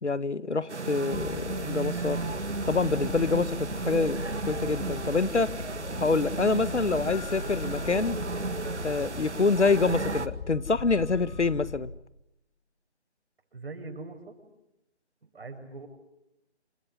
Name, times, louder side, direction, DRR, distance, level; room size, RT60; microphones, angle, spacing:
voice 1, 0.0-2.2 2.7-4.2 4.4-5.5 6.0-8.2 8.8-11.9, left 4 dB, 85° left, 1.6 m, -26 dB
sound 1, 0.7-10.3, right 4 dB, 80° right, 2.0 m, -34 dB
sound 2, 1.1-11.8, left 5 dB, 40° left, 3.8 m, -39 dB
voice 2, 13.5-14.4 15.2-15.9, right 3 dB, 60° right, 7.6 m, -41 dB
29.0 x 21.0 x 9.7 m
figure-of-eight pair, 155°, 34 cm